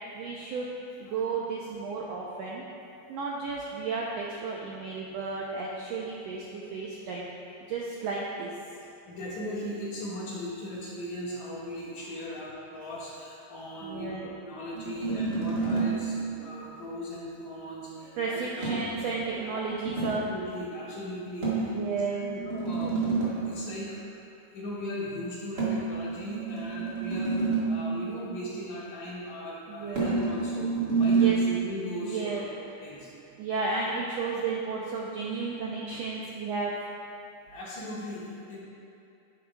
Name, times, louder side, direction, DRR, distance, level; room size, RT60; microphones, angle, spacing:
voice 1, 0.1-0.7 1.0-2.6 3.1-7.3 7.7-8.5 13.8-14.3 18.2-20.2 21.6-22.4 29.7-30.2 31.2-31.4 32.0-32.4 33.4-36.7, right 4 dB, 85° right, -3 dB, 1.5 m, -33 dB
voice 2, 9.0-18.8 19.3-19.7 20.0-21.7 22.5-24.1 24.5-32.4 32.8-33.1 37.5-38.6, left 1 dB, 60° left, -8 dB, 3.1 m, -38 dB
sound 1, 14.7-16.2 18.6-20.3 21.4-23.5 25.6-28.0 29.9-31.4, right 4 dB, 35° right, 2.0 m, -28 dB
11.0 x 9.8 x 2.3 m, 2.7 s
omnidirectional pair, 3.8 m